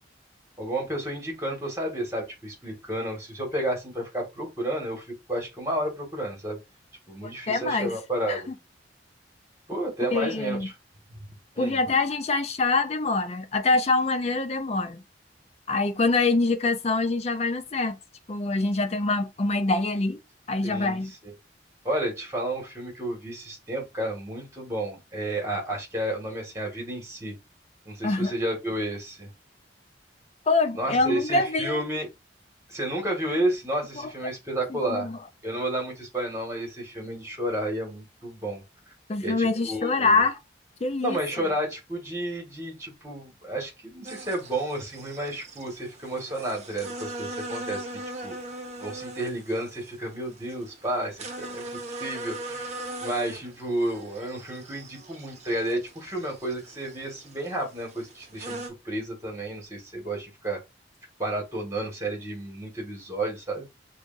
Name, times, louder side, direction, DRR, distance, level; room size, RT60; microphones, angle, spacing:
voice 1, 0.6-6.6 7.1-8.5 9.7-10.6 11.5-11.8 20.6-21.0 21.2-21.3 21.8-27.3 27.8-29.3 30.8-32.1 32.7-35.1 35.4-38.6 39.2-40.2 41.0-48.3 48.8-51.6 52.0-60.6 61.2-63.6, right 1 dB, 15° right, 1.6 m, -31 dB
voice 2, 7.2-7.9 8.3-8.4 10.1-10.7 11.6-15.0 15.7-18.0 18.3-20.2 20.5-21.1 28.0-28.3 30.5-31.8 34.0-34.1 34.7-35.2 39.1-40.4 40.8-41.2, left 3 dB, 35° left, 0.5 m, -25 dB
sound 1, 44.0-58.7, right 2 dB, 35° right, 0.8 m, -40 dB
6.2 x 2.4 x 2.5 m
head